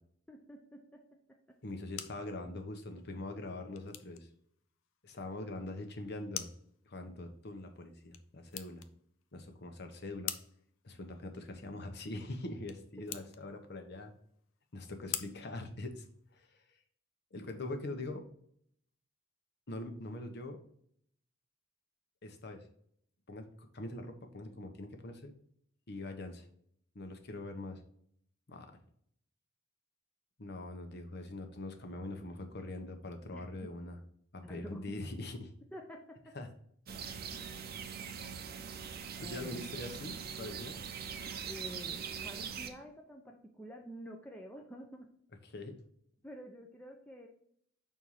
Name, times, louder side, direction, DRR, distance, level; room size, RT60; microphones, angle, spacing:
voice 1, 0.3-0.8 33.3-33.7 34.4-34.8 35.7-36.0 37.0-37.1 39.2-39.7 41.5-45.1 46.2-47.3, equal, 10° left, 1 dB, 0.7 m, -48 dB
sound 1, 1.5-16.5, left 11 dB, 90° left, 0.6 m, -48 dB
voice 2, 1.6-4.3 5.0-6.5 6.9-8.8 9.3-10.3 10.8-14.1 14.7-16.1 16.3-16.5 17.3-18.2 19.7-20.6 22.2-22.7 23.3-25.3 25.9-26.5 26.9-27.8 28.5-28.7 30.4-34.0 34.3-35.5 36.3-36.5 38.1-38.3 39.2-40.8 45.4-45.8, left 2 dB, 55° left, 5 dB, 1.0 m, -43 dB
sound 2, 36.9-42.7, right 7 dB, 50° right, 0.7 m, -42 dB
5.6 x 4.4 x 4.8 m, 0.66 s
head